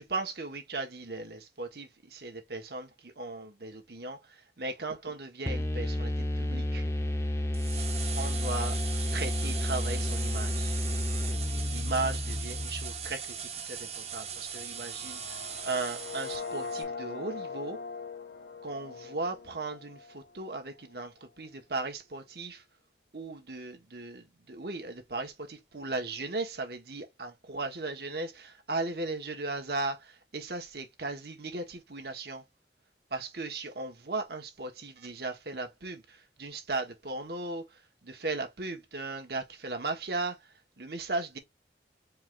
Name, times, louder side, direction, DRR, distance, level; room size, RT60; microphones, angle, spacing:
voice 1, 0.0-6.9 8.1-8.8 9.1-10.8 11.6-17.8 18.6-22.6 23.1-32.4 33.1-41.4, right 3 dB, 60° right, 1.3 m, -37 dB
sound 1, 5.5-13.1, left 1 dB, 15° left, 0.6 m, -31 dB
sound 2, 7.5-16.8, right 7 dB, 35° right, 0.8 m, -39 dB
sound 3, 14.7-20.7, left 4 dB, 85° left, 1.3 m, -41 dB
4.6 x 2.5 x 3.3 m
head